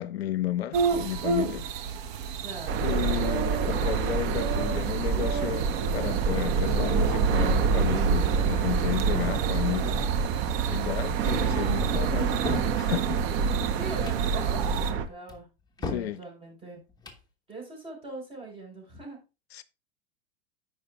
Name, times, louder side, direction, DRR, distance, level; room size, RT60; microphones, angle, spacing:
voice 1, 0.0-1.7 2.8-10.1 10.7-13.2 15.8-16.2 19.5-19.6, left 12 dB, 75° left, 0.5 m, -33 dB
sound 1, 0.7-14.9, right 5 dB, 55° right, 1.1 m, -34 dB
voice 2, 2.4-3.0 13.7-15.5 15.8-16.8 17.5-19.2, right 2 dB, 15° right, 4.3 m, -41 dB
sound 2, 2.7-15.1, right 5 dB, 40° right, 0.9 m, -26 dB
sound 3, 12.2-12.8 13.9-14.3 15.3-16.1 16.9-17.2, left 3 dB, 15° left, 1.0 m, -36 dB
13.5 x 5.1 x 2.3 m
hypercardioid pair, 95°, 32 cm